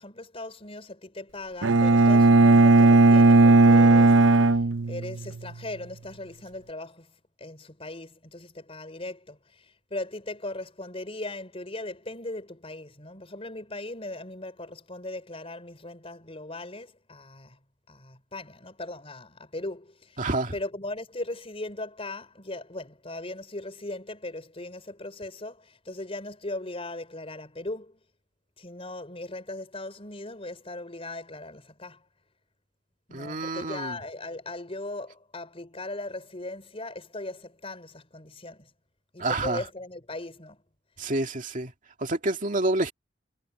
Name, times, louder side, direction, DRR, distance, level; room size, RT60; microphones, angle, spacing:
voice 1, 0.0-4.6 4.9-17.6 17.9-28.0 28.6-32.1 33.1-38.7 39.1-40.6, left 2 dB, 30° left, 4.6 m, -38 dB
Bowed string instrument, 1.6-5.5, right 3 dB, 80° right, 0.8 m, -17 dB
voice 2, 20.2-20.5 33.1-34.0 39.2-39.6 41.0-41.7 42.0-42.9, right 2 dB, 45° right, 2.2 m, -28 dB
head